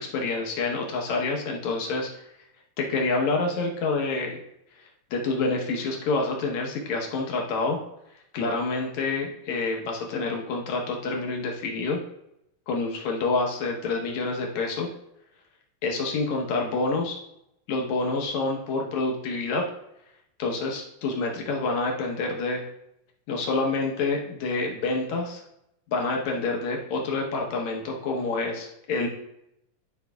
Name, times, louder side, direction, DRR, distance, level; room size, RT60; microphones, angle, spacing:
voice 1, 0.0-2.1 2.8-4.4 5.1-7.8 8.3-12.0 12.7-14.9 15.8-17.2 17.7-19.6 20.4-22.6 23.3-25.4 25.9-29.1, left 3 dB, 65° left, 0 dB, 2.0 m, -27 dB
11.0 x 5.3 x 2.3 m, 0.81 s
omnidirectional pair, 4.0 m